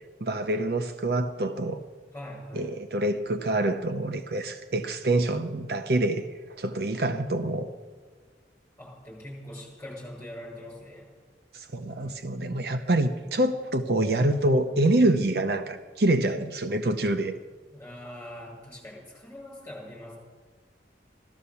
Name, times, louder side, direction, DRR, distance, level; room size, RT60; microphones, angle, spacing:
voice 1, 0.2-1.8 2.5-6.3 6.6-7.7 11.5-17.3, right 1 dB, 60° right, 8 dB, 0.7 m, -26 dB
voice 2, 2.1-2.7 8.8-11.1 17.7-20.2, left 1 dB, 15° left, -3 dB, 6.4 m, -42 dB
16.0 x 13.0 x 7.0 m, 1.5 s
head